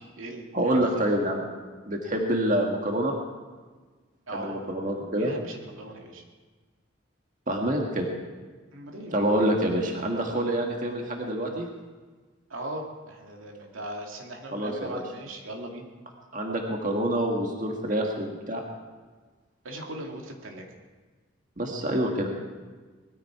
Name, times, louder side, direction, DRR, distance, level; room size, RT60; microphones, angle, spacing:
voice 1, 0.0-0.5 1.0-1.1 4.3-4.7 5.1-6.2 8.7-9.2 12.5-15.9 19.6-20.6, right 1 dB, 80° right, 1 dB, 2.5 m, -38 dB
voice 2, 0.5-1.4 1.9-3.1 4.3-5.3 7.5-8.0 9.1-11.7 14.5-15.0 16.3-18.6 21.6-22.3, right 1 dB, 40° right, 1 dB, 1.7 m, -26 dB
20.0 x 14.5 x 4.8 m, 1.4 s
head